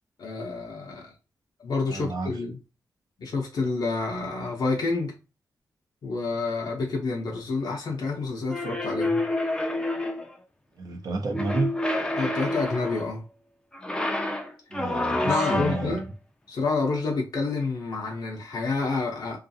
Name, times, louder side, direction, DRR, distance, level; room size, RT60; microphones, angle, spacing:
voice 1, 0.2-1.1 1.6-2.6 3.2-5.2 6.0-9.3 12.2-13.2 15.2-16.0 16.5-19.4, left 3 dB, 70° left, 0.6 m, -28 dB
voice 2, 1.9-2.3 10.8-11.7 14.7-16.0, right 3 dB, 65° right, 0.7 m, -30 dB
sound 1, 8.5-10.4 11.3-13.1 13.7-16.0, left 1 dB, 10° left, 0.4 m, -28 dB
2.5 x 2.4 x 2.6 m
wide cardioid pair, 105°, 7 cm